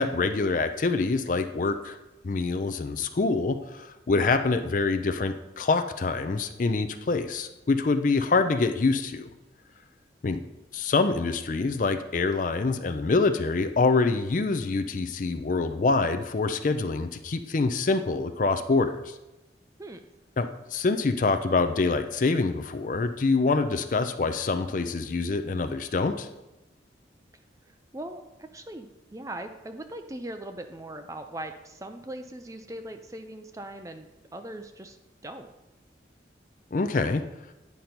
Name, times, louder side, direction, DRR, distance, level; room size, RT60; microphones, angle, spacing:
voice 1, 0.0-2.0 2.2-9.3 10.2-10.4 10.7-19.1 20.4-26.3 36.7-37.2, left 3 dB, 45° left, 8 dB, 0.4 m, -25 dB
voice 2, 27.6-35.0 35.2-35.5, right 1 dB, 15° right, 7 dB, 0.5 m, -40 dB
9.4 x 5.3 x 4.4 m, 1.0 s
head